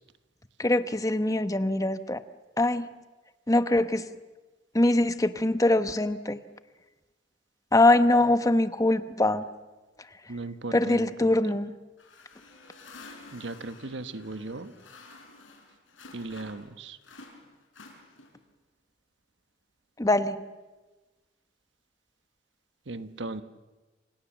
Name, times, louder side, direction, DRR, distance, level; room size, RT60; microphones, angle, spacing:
voice 1, 0.6-2.2 2.6-2.9 3.5-4.1 4.7-6.4 7.7-9.4 10.7-11.7 20.0-20.4, left 2 dB, 20° left, 10 dB, 1.0 m, -23 dB
voice 2, 10.3-11.3 13.3-14.7 16.1-17.0 22.9-23.4, right 2 dB, 70° right, 11 dB, 1.2 m, -37 dB
sound 1, 12.0-16.7 17.0-18.5, left 3 dB, 80° left, 6.3 m, -50 dB
28.5 x 27.0 x 7.3 m, 1.2 s
head